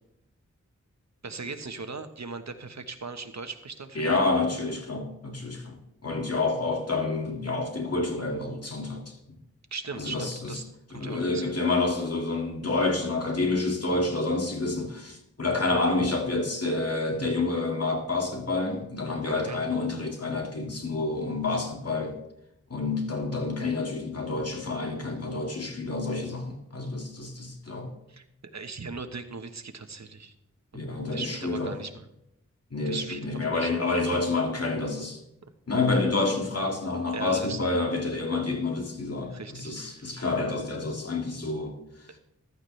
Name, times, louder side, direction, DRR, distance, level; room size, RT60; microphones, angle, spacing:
voice 1, 1.2-4.4 9.7-10.6 10.9-11.4 19.3-19.6 28.1-28.2 28.5-30.3 31.1-32.1 32.8-33.2 33.5-33.7 37.1-37.6 39.3-40.3, right 4 dB, 60° right, 8 dB, 1.1 m, -38 dB
voice 2, 4.0-5.8 6.0-9.1 10.0-10.6 10.9-22.2 22.7-27.9 30.7-31.7 32.7-35.2 35.7-41.7, left 3 dB, 50° left, 2 dB, 2.2 m, -28 dB
14.5 x 12.0 x 3.2 m, 0.84 s
wide cardioid pair, 70°, 30 cm